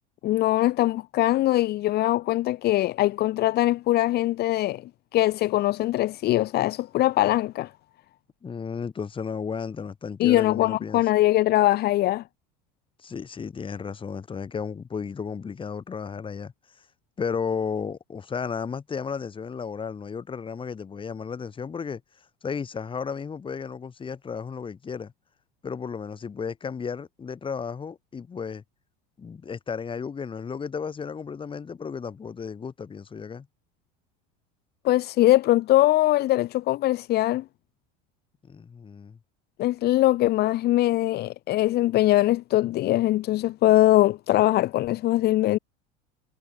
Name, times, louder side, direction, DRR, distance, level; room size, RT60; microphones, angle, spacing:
voice 1, 0.2-7.7 10.2-12.2 34.8-37.4 39.6-45.6, left 15 dB, 50° left, 1.5 m, -22 dB
voice 2, 8.4-11.0 13.0-16.5 17.2-22.0 22.4-25.1 25.6-28.6 29.2-33.5 38.4-39.2, left 6 dB, 25° left, 4.0 m, -33 dB
supercardioid pair, 110°, 21 cm